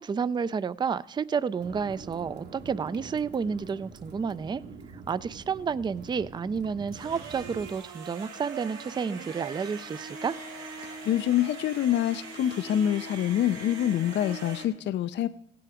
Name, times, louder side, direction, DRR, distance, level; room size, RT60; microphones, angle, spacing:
voice 1, 0.0-4.6 5.1-10.4, right 6 dB, 20° right, 17 dB, 0.4 m, -30 dB
sound 1, 1.6-7.7, right 4 dB, 60° right, 1.6 m, -45 dB
sound 2, 6.9-14.6, right 3 dB, 90° right, 2.4 m, -41 dB
voice 2, 10.8-15.3, left 11 dB, 60° left, 13 dB, 0.4 m, -26 dB
16.5 x 7.7 x 4.9 m, 0.76 s
cardioid pair, 90°, 20 cm